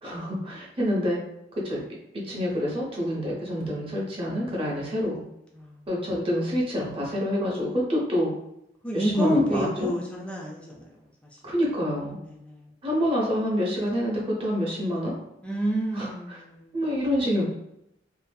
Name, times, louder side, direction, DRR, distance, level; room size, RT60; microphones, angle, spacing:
voice 1, 0.0-1.2 1.6-1.8 2.2-5.2 5.9-8.3 8.9-9.9 11.4-12.2 12.8-15.1 15.9-16.4 16.7-17.5, equal, 30° right, -3 dB, 0.7 m, -27 dB
voice 2, 8.8-10.9 12.2-12.7 15.4-16.9, equal, 5° left, -3 dB, 0.3 m, -28 dB
2.5 x 2.4 x 2.2 m, 0.83 s
head